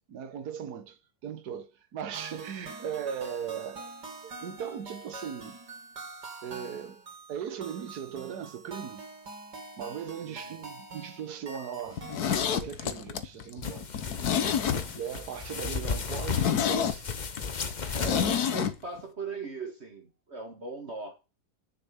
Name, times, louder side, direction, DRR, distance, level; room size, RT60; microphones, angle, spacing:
voice 1, 0.1-3.9 4.2-5.6 6.4-7.0 7.3-9.0 9.8-12.0 12.5-14.0 14.9-17.1, right 8 dB, 75° right, 1.7 m, -38 dB
sound 1, 2.1-12.6, right 3 dB, 90° right, 3.1 m, -45 dB
voice 2, 10.2-10.7 18.0-21.1, right 4 dB, 40° right, 2.0 m, -39 dB
Zipper (clothing), 11.9-15.2 15.5-15.6 15.9-16.0 16.3-18.7 19.0-19.1, left 8 dB, 70° left, 1.6 m, -28 dB
sound 2, 13.6-18.4, left 5 dB, 35° left, 0.9 m, -34 dB
10.0 x 6.8 x 8.4 m
omnidirectional pair, 1.7 m